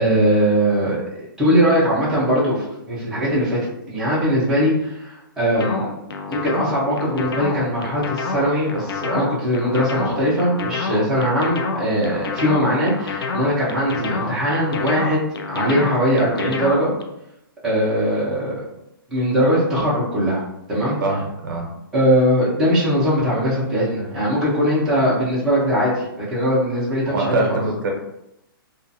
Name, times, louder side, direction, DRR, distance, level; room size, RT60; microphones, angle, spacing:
voice 1, 0.0-3.6 3.9-5.9 6.3-16.9 17.6-18.6 19.1-20.4 20.7-21.0 21.9-27.6, equal, 5° right, -10 dB, 0.6 m, -20 dB
sound 1, 5.5-17.0, left 4 dB, 85° left, 0.4 m, -28 dB
voice 2, 21.0-21.7 27.1-27.9, right 2 dB, 65° right, 0 dB, 0.7 m, -23 dB
2.4 x 2.4 x 2.6 m, 0.85 s
hypercardioid pair, 160°, 12 cm